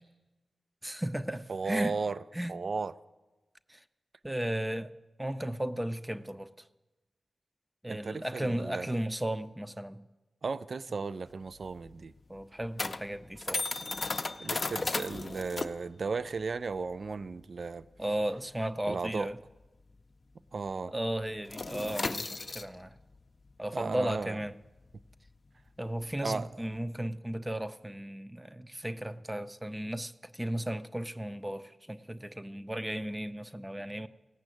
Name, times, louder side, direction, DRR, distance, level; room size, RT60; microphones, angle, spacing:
voice 1, 0.8-2.0 2.3-2.5 3.7-3.8 4.2-4.9 5.2-6.7 7.8-10.0 12.3-13.8 18.0-19.4 20.9-23.0 23.6-24.6 25.8-34.1, right 1 dB, 15° right, 0.5 m, -35 dB
voice 2, 1.5-2.2 2.5-2.9 7.9-8.9 10.4-12.1 14.4-17.9 18.9-19.3 20.5-20.9 23.7-24.4 26.2-26.5, right 4 dB, 65° right, 0.3 m, -35 dB
sound 1, 11.3-20.2 20.5-20.7 21.0-26.8, left 3 dB, 50° left, 0.5 m, -37 dB
17.0 x 6.1 x 7.7 m
cardioid pair, 60°, 0 cm